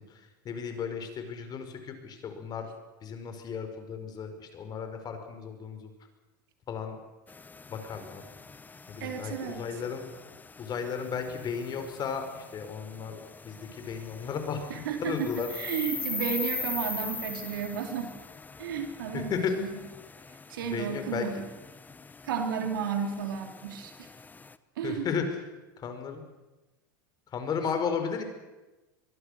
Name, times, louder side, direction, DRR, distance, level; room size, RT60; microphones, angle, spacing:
voice 1, 0.1-2.7 3.0-5.9 6.7-7.0 7.7-8.2 8.9-10.1 10.6-14.6 15.0-15.5 19.1-19.5 20.7-21.3 24.8-25.3 25.8-26.2 27.3-28.2, left 6 dB, 35° left, 7 dB, 4.9 m, -34 dB
sound 1, 7.3-24.6, left 4 dB, 15° left, 1.0 m, -42 dB
voice 2, 9.0-9.6 14.7-18.1 18.6-19.7 20.5-21.4 22.2-24.1 24.8-25.2, right 7 dB, 80° right, 5 dB, 4.1 m, -33 dB
23.0 x 22.5 x 6.7 m, 1.1 s
hypercardioid pair, 100°, 11 cm